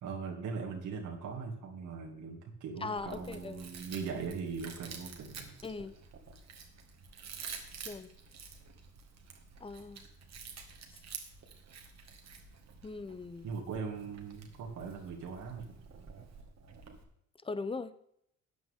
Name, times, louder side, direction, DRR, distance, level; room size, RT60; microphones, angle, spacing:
voice 1, 0.0-5.6 13.4-15.7, right 5 dB, 80° right, 0 dB, 2.5 m, -40 dB
voice 2, 2.8-3.7 5.6-5.9 7.8-8.1 9.6-10.0 12.8-13.5 17.4-17.9, left 4 dB, 20° left, 13 dB, 0.7 m, -39 dB
Chewing mastication, 3.0-17.0, right 6 dB, 60° right, 2.0 m, -49 dB
14.0 x 9.0 x 3.7 m, 0.72 s
cardioid pair, 90°, 30 cm